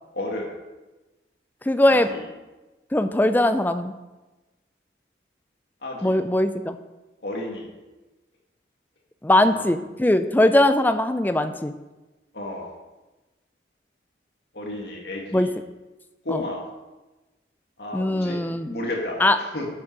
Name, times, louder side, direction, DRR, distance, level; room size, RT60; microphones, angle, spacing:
voice 1, 0.1-0.5 1.9-2.2 5.8-6.2 7.2-7.7 9.3-9.7 12.3-12.7 14.5-15.5 16.2-16.6 17.8-18.4 18.7-19.7, left 1 dB, 70° left, -1 dB, 2.1 m, -32 dB
voice 2, 1.7-2.1 2.9-3.9 6.0-6.8 9.2-11.7 15.3-15.5 16.3-16.4 17.9-18.7 19.2-19.4, left 1 dB, 10° left, 10 dB, 0.4 m, -20 dB
8.2 x 6.2 x 6.0 m, 1.1 s
head